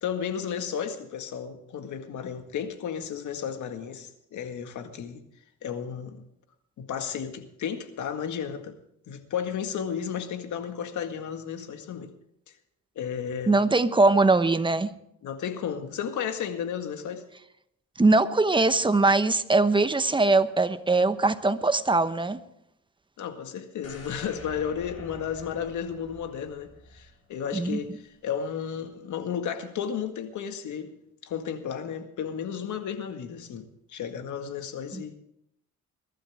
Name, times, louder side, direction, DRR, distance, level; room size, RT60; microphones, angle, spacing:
voice 1, 0.0-5.3 5.6-6.2 6.8-8.8 9.1-12.1 13.0-13.6 15.2-17.2 23.2-31.0 31.2-35.2, left 8 dB, 75° left, 1.9 m, -33 dB
voice 2, 13.5-14.9 18.0-22.4 27.5-27.8 34.9-35.0, right 3 dB, 15° right, 1.0 m, -21 dB
sound 1, 23.8-27.8 28.2-28.3, left 2 dB, 50° left, 4.8 m, -48 dB
22.5 x 12.5 x 3.6 m
cardioid pair, 90°, 30 cm